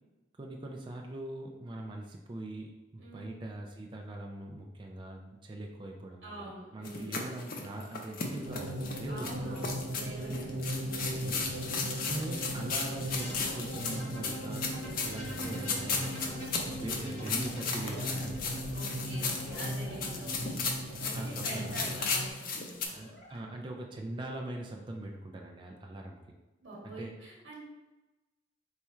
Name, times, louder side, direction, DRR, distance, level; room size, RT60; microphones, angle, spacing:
voice 1, 0.4-9.7 11.3-11.6 12.0-19.1 19.3-19.5 20.8-21.8 22.9-26.2 26.8-27.2, right 1 dB, 25° right, 1 dB, 0.4 m, -42 dB
voice 2, 3.0-3.5 6.2-7.3 9.1-11.3 18.7-20.6 21.0-22.9 26.6-27.6, right 1 dB, 70° right, -3 dB, 1.1 m, -46 dB
sound 1, 6.8-22.9, left 4 dB, 50° left, 0.5 m, -36 dB
sound 2, 8.4-22.3, right 1 dB, 85° right, 0.5 m, -38 dB
sound 3, 13.1-21.6 22.8-23.4, equal, 35° left, 1.2 m, -45 dB
4.1 x 2.4 x 4.3 m, 1.1 s
head